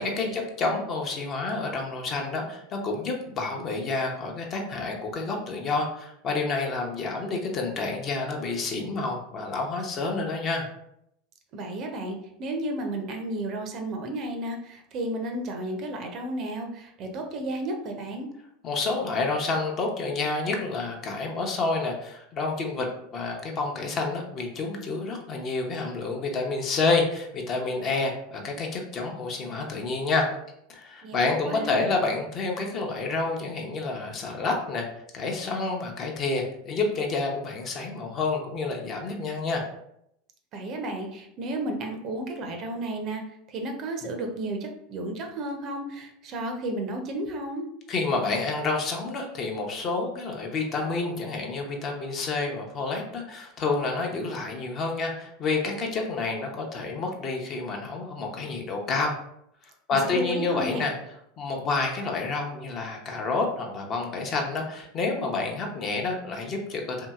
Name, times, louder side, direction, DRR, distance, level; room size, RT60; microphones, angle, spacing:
voice 1, 0.0-10.7 18.6-22.9 23.1-30.3 30.7-34.9 35.1-39.6 47.9-59.2 59.9-60.9 61.4-67.1, left 3 dB, 40° left, 1 dB, 0.7 m, -29 dB
voice 2, 11.5-18.3 31.0-31.9 40.5-43.2 43.5-47.7 60.0-60.9, right 1 dB, 45° right, 4 dB, 0.5 m, -33 dB
2.8 x 2.6 x 2.3 m, 0.75 s
hypercardioid pair, 85°, 0 cm